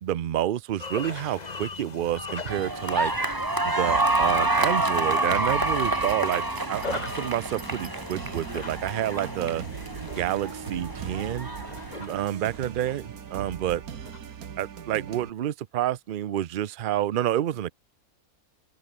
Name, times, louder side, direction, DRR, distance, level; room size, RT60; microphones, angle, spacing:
voice 1, 0.0-3.1 3.6-9.6 10.0-11.5 12.0-13.8 14.6-17.7, right 12 dB, 55° right, 0.6 m, -29 dB
sound 1, 0.8-14.3, left 4 dB, 30° left, 1.3 m, -40 dB
sound 2, 2.5-12.3, right 2 dB, 15° right, 1.5 m, -28 dB
sound 3, 3.9-15.3, right 8 dB, 85° right, 1.7 m, -40 dB
open air
omnidirectional pair, 1.5 m